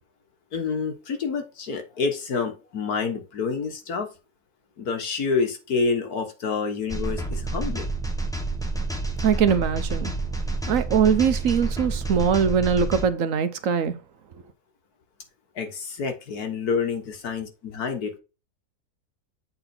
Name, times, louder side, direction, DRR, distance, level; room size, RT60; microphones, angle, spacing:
voice 1, 0.5-4.1 4.8-7.9 15.6-18.2, left 5 dB, 80° left, 2.0 m, -28 dB
sound 1, 6.9-13.1, right 2 dB, 5° left, 0.8 m, -29 dB
voice 2, 9.2-10.1 10.7-14.0, right 7 dB, 65° right, 1.1 m, -22 dB
7.8 x 3.9 x 4.4 m
omnidirectional pair, 1.6 m